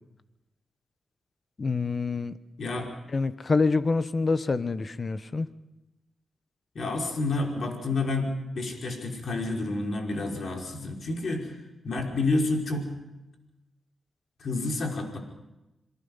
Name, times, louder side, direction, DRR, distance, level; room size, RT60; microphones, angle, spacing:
voice 1, 1.6-2.3 3.1-5.5, left 4 dB, 40° left, 12 dB, 1.2 m, -26 dB
voice 2, 2.6-2.9 6.8-11.6 11.8-12.9 14.4-15.2, left 2 dB, 60° left, 1 dB, 5.2 m, -29 dB
27.0 x 22.5 x 5.6 m, 0.97 s
cardioid pair, 80°, 0 cm